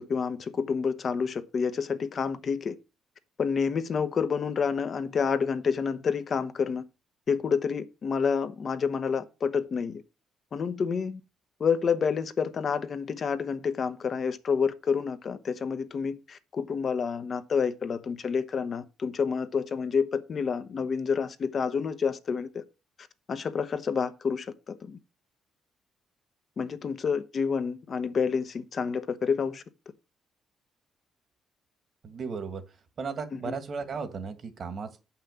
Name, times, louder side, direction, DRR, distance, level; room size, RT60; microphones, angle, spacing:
voice 1, 0.0-2.8 3.4-6.8 7.3-10.0 10.5-11.2 11.6-22.6 23.3-25.0 26.6-29.6 33.3-33.6, left 6 dB, 50° left, 1.0 m, -29 dB
voice 2, 32.0-32.6 33.0-35.0, right 5 dB, 50° right, 1.9 m, -35 dB
7.2 x 5.8 x 7.0 m
cardioid pair, 90°, 0 cm